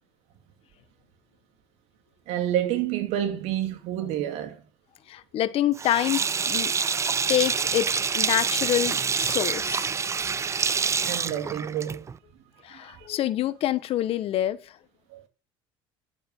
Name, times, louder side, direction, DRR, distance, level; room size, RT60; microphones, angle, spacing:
voice 1, 2.3-4.6 11.0-12.1 12.7-12.8 15.1-15.2, right 11 dB, 70° right, 2.7 m, -28 dB
voice 2, 5.1-6.8 7.3-9.9 12.6-14.6, left 13 dB, 55° left, 1.3 m, -26 dB
Sink (filling or washing), 5.8-12.2, right 6 dB, 25° right, 0.6 m, -26 dB
11.0 x 8.4 x 5.6 m
supercardioid pair, 100°, 12 cm